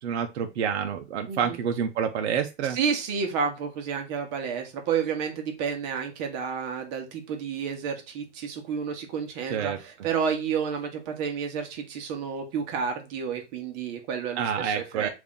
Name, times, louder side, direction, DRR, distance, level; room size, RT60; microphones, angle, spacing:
voice 1, 0.0-2.8 9.5-9.8 14.3-15.1, right 7 dB, 65° right, 6 dB, 0.6 m, -28 dB
voice 2, 1.3-1.6 2.7-15.1, right 6 dB, 35° right, 4 dB, 1.1 m, -30 dB
3.6 x 2.6 x 3.6 m, 0.26 s
hypercardioid pair, 130°, 36 cm